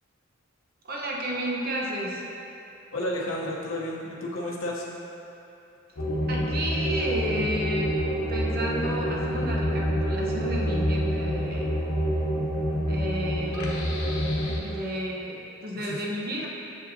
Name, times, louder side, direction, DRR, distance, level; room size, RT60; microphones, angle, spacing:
voice 1, 0.8-2.2 6.3-11.7 12.9-13.9 14.6-16.5, equal, 45° right, -3 dB, 0.9 m, -32 dB
voice 2, 2.9-4.8 15.8-16.0, left 1 dB, 75° left, -4 dB, 0.8 m, -31 dB
sound 1, 6.0-14.6, equal, 90° left, 1.1 m, -27 dB
7.3 x 7.2 x 2.7 m, 2.8 s
head